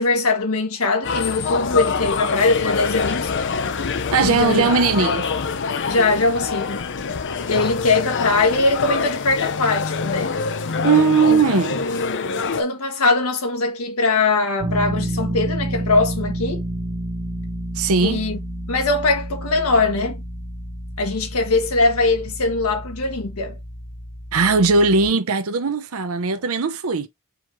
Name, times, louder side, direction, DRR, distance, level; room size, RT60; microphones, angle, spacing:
voice 1, 0.0-3.3 4.3-4.7 5.9-6.8 7.5-10.4 11.3-11.4 11.8-12.2 12.6-16.6 18.0-18.4 18.7-20.2 21.0-23.6, left 3 dB, 85° left, 1.0 m, -21 dB
sound 1, 1.0-12.6, left 5 dB, 60° left, 0.6 m, -25 dB
voice 2, 4.1-5.3 10.8-11.8 17.7-18.2 24.3-27.1, right 4 dB, 75° right, 0.7 m, -18 dB
sound 2, 14.6-25.1, right 1 dB, 35° right, 1.0 m, -30 dB
4.9 x 3.1 x 3.5 m
head